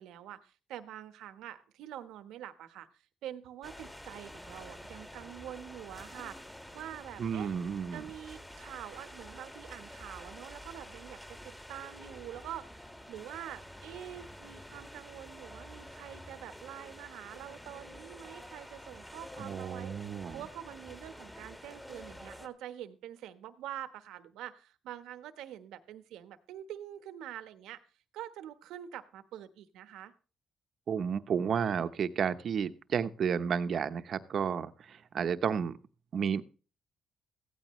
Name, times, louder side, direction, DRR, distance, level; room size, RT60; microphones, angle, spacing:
voice 1, 0.0-2.9 3.2-6.4 6.7-7.5 7.9-27.8 28.1-30.1, right 11 dB, 90° right, 11 dB, 1.2 m, -46 dB
sound 1, 3.6-22.5, equal, 10° left, 1.9 m, -49 dB
voice 2, 7.2-8.1 19.4-20.4 30.9-35.8 36.1-36.4, right 7 dB, 60° right, 11 dB, 1.0 m, -32 dB
16.0 x 15.0 x 3.2 m, 0.36 s
cardioid pair, 90°, 0 cm